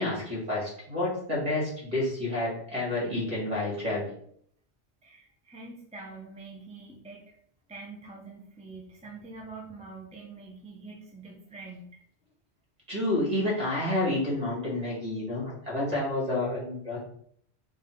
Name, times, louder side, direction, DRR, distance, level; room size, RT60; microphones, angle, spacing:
voice 1, 0.0-4.1 12.9-17.0, left 1 dB, 35° right, -4 dB, 1.9 m, -29 dB
voice 2, 5.0-7.4 7.7-12.0, right 3 dB, 10° right, -2 dB, 0.5 m, -45 dB
3.9 x 2.5 x 4.4 m, 0.64 s
omnidirectional pair, 1.1 m